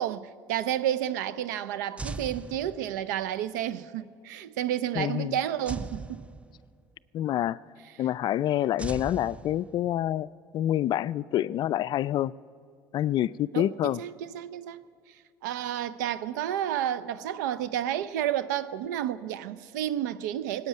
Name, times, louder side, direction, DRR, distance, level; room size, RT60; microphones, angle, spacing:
voice 1, 0.0-6.3 13.5-14.8 15.4-20.7, right 11 dB, 90° right, 0.6 m, -31 dB
sound 1, 2.0-3.2 5.7-6.9 8.8-10.1, right 3 dB, 15° right, 0.4 m, -39 dB
voice 2, 5.0-5.4 7.1-7.6 8.0-12.3 12.9-14.0, left 12 dB, 50° left, 0.4 m, -27 dB
18.0 x 8.3 x 9.3 m
supercardioid pair, 85°, 10 cm